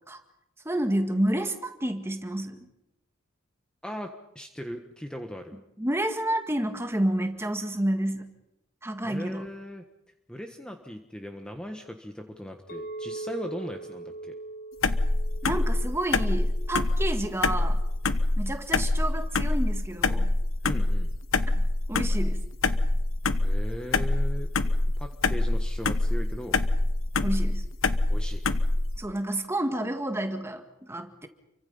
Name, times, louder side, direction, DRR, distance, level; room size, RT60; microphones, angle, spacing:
voice 1, 0.7-2.6 5.8-8.3 8.8-9.4 15.4-17.8 18.4-20.3 21.6-22.4 27.2-27.6 29.0-31.3, right 1 dB, 10° right, 6 dB, 1.9 m, -29 dB
voice 2, 3.8-5.5 9.0-9.8 10.3-14.3 20.6-21.1 23.4-24.5 25.0-26.6 28.1-28.4, equal, 5° left, 4 dB, 1.4 m, -38 dB
Chink clink, 12.7-16.9, right 2 dB, 45° left, 1.7 m, -41 dB
sound 1, 14.8-29.0, left 2 dB, 85° left, 1.1 m, -25 dB
29.5 x 24.0 x 5.6 m, 0.88 s
head